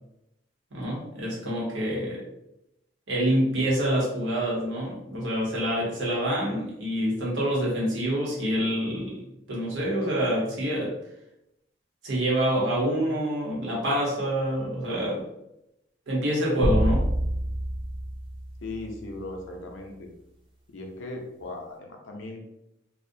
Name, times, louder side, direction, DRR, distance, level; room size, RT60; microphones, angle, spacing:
voice 1, 0.7-2.2 3.1-10.9 12.0-15.3 16.1-17.1, equal, 80° right, -4 dB, 0.9 m, -27 dB
sound 1, 16.6-19.1, right 1 dB, 25° right, 0.3 m, -26 dB
voice 2, 18.6-20.1 20.7-22.4, left 2 dB, 80° left, 2 dB, 0.5 m, -38 dB
2.4 x 2.0 x 2.6 m, 0.85 s
head